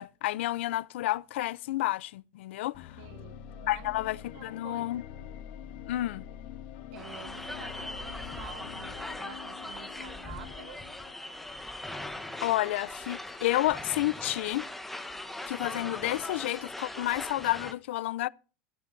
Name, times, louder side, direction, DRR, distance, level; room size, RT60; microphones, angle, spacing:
voice 1, 0.0-2.9 3.7-5.0 5.9-6.2 12.4-14.7 15.5-18.3, left 16 dB, 85° left, 0.4 m, -30 dB
sound 1, 2.7-11.8, left 10 dB, 60° left, 2.0 m, -46 dB
voice 2, 3.0-5.0 5.5-5.7 6.9-10.8, right 11 dB, 60° right, 1.5 m, -49 dB
sound 2, 6.9-17.7, left 1 dB, 5° left, 1.0 m, -40 dB
17.0 x 12.0 x 2.6 m
supercardioid pair, 150°, 6 cm